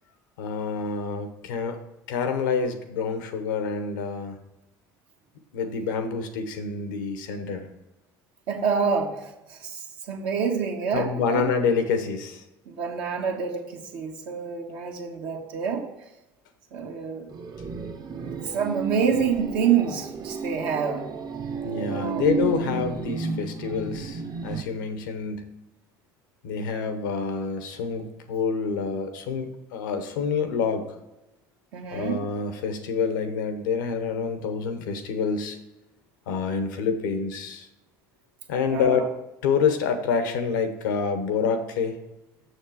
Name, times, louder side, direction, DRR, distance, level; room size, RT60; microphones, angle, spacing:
voice 1, 0.4-1.8 2.1-4.4 5.5-7.7 10.9-12.4 21.6-25.5 26.4-30.9 31.9-35.6 36.3-37.7 38.5-39.1 39.4-41.9, left 5 dB, 90° left, 8 dB, 1.0 m, -27 dB
voice 2, 8.5-11.5 12.7-15.9 16.7-17.3 18.1-21.1 21.9-22.2 31.7-32.2 38.7-39.1, right 6 dB, 75° right, 1 dB, 1.5 m, -27 dB
sound 1, 17.3-24.6, right 5 dB, 40° right, 0.9 m, -32 dB
6.8 x 6.5 x 4.7 m, 0.98 s
hypercardioid pair, 75°, 10 cm